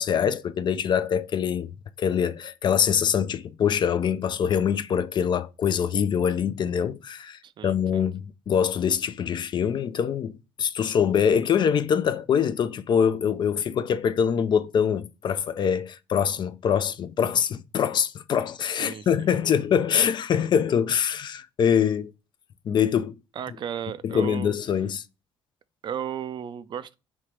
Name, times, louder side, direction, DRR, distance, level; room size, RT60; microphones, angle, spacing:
voice 1, 0.0-1.7 2.0-22.1 22.7-23.2 24.0-25.0, left 8 dB, 50° left, 0.4 m, -24 dB
voice 2, 7.4-8.1 18.8-19.4 23.4-24.5 25.8-26.9, right 9 dB, 50° right, 0.4 m, -35 dB
3.2 x 2.9 x 4.5 m
cardioid pair, 85°, 10 cm